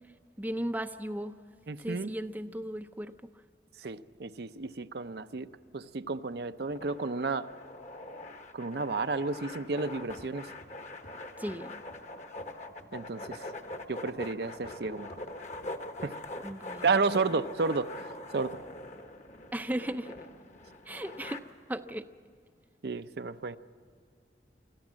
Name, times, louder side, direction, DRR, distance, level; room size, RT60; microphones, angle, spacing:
voice 1, 0.4-1.3 1.8-3.1 11.4-11.7 16.4-16.9 19.5-20.2 20.9-21.4 21.7-22.1, right 1 dB, 10° right, 8 dB, 0.5 m, -36 dB
voice 2, 1.7-2.1 3.8-5.5 5.7-7.5 8.5-10.5 12.9-13.4 13.9-15.1 16.0-16.1 16.8-17.9 18.3-18.6 22.8-23.6, right 4 dB, 65° right, 10 dB, 0.6 m, -31 dB
sound 1, 6.7-21.4, left 1 dB, 40° left, 1.2 m, -43 dB
sound 2, 10.2-10.3 10.6-11.2 11.5-11.6 11.9-12.0 12.4-12.5 12.8-12.9 13.3-13.4 13.7-13.9 14.2-14.8 15.1-15.2 15.5-15.7 16.0-16.2 16.5-16.6, equal, 70° left, 2.3 m, -54 dB
25.0 x 14.5 x 7.4 m, 2.2 s
head